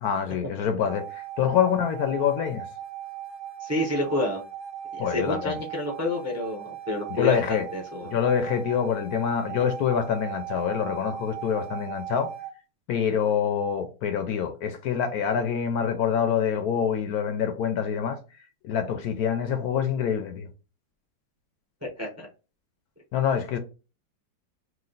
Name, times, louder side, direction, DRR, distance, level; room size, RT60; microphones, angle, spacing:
voice 1, 0.0-2.7 5.0-5.6 7.1-7.6 8.0-12.3 12.9-18.2 18.6-20.5 23.1-23.6, left 8 dB, 70° left, 1.0 m, -26 dB
sound 1, 0.8-12.5, right 9 dB, 45° right, 1.0 m, -38 dB
voice 2, 3.6-4.4 4.9-8.1 21.8-22.3, left 1 dB, 15° right, 0.5 m, -29 dB
3.1 x 2.7 x 3.9 m
omnidirectional pair, 1.8 m